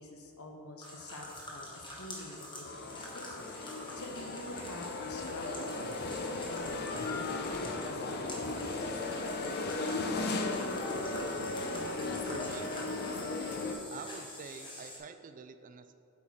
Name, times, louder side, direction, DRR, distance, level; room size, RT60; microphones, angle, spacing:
voice 1, 0.0-8.9, left 2 dB, 75° left, 3 dB, 0.9 m, -47 dB
sound 1, 0.8-15.0, left 1 dB, 20° left, 1.2 m, -46 dB
sound 2, 2.7-13.7, left 3 dB, 45° left, 0.5 m, -36 dB
voice 2, 12.3-12.7 13.9-15.9, right 5 dB, 35° right, 9 dB, 0.3 m, -47 dB
8.4 x 4.8 x 4.2 m, 2.6 s
head